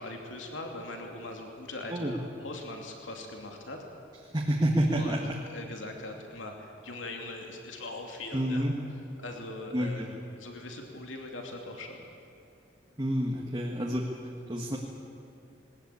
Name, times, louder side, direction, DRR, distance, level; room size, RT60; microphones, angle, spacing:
voice 1, 0.0-3.8 4.9-8.7 9.2-12.0, left 2 dB, 80° left, 2 dB, 2.8 m, -41 dB
voice 2, 4.3-5.4 8.3-8.7 9.7-10.1 13.0-14.1 14.5-14.8, equal, 20° right, -1 dB, 1.8 m, -28 dB
20.5 x 20.0 x 8.5 m, 2.7 s
head